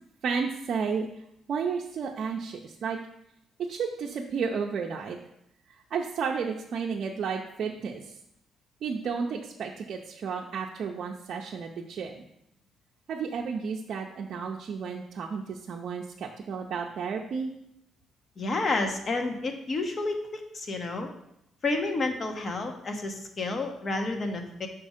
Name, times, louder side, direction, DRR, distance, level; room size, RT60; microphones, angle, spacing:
voice 1, 0.2-1.1 1.5-3.0 3.6-5.2 5.9-8.1 8.8-12.3 13.1-17.5, right 5 dB, 60° right, 0 dB, 0.5 m, -32 dB
voice 2, 18.4-21.1 21.6-24.7, left 3 dB, 45° left, 4 dB, 1.0 m, -30 dB
5.3 x 4.3 x 5.0 m, 0.80 s
cardioid pair, 90°, 0 cm